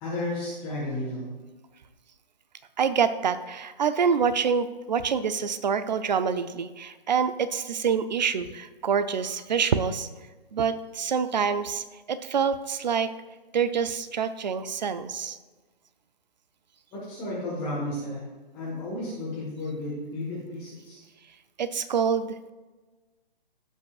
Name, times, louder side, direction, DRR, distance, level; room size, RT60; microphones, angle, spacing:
voice 1, 0.0-1.3 17.1-18.2 18.5-21.0, left 1 dB, 15° left, -7 dB, 1.2 m, -33 dB
voice 2, 2.8-10.1 10.5-13.1 13.5-15.4 21.6-22.4, right 6 dB, 50° right, 12 dB, 0.5 m, -26 dB
15.5 x 5.4 x 2.4 m, 1.2 s
hypercardioid pair, 165°, 29 cm